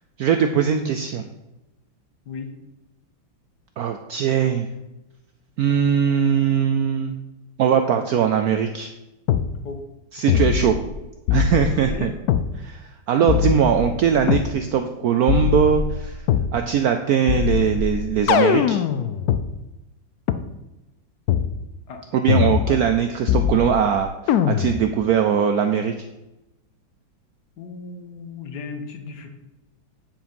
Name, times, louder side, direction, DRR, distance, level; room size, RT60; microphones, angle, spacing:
voice 1, 0.2-1.2 3.8-4.7 5.6-7.2 7.6-8.9 10.1-10.7 11.3-12.1 12.5-16.2 16.5-18.8 22.1-25.9, right 8 dB, 85° right, 6 dB, 0.8 m, -20 dB
sound 1, 9.3-9.5 10.3-11.0 11.3-12.5 13.3-14.5 15.3-16.5 17.3-19.4 20.3-20.4 21.3-21.5 22.3-23.0 23.3-23.9 24.3-24.9, left 9 dB, 80° left, 0.8 m, -21 dB
voice 2, 27.6-29.3, left 5 dB, 60° left, 5 dB, 1.5 m, -35 dB
9.1 x 4.9 x 5.3 m, 0.98 s
omnidirectional pair, 2.2 m